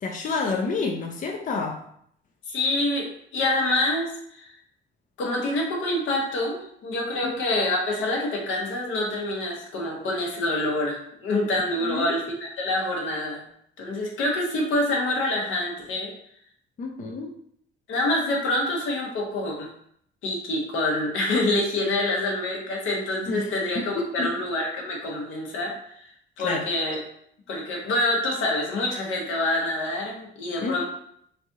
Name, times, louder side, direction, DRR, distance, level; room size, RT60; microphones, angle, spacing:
voice 1, 0.0-1.8 7.2-7.3 11.8-12.2 16.8-17.3 23.3-24.3 26.4-26.7 30.6-30.8, left 4 dB, 40° left, 2 dB, 0.5 m, -29 dB
voice 2, 2.5-4.5 5.2-13.4 13.8-16.1 17.9-19.7 20.2-26.1 26.4-27.0 27.5-30.8, left 1 dB, 80° left, 0 dB, 1.0 m, -26 dB
3.2 x 2.7 x 3.6 m, 0.68 s
cardioid pair, 90°, 20 cm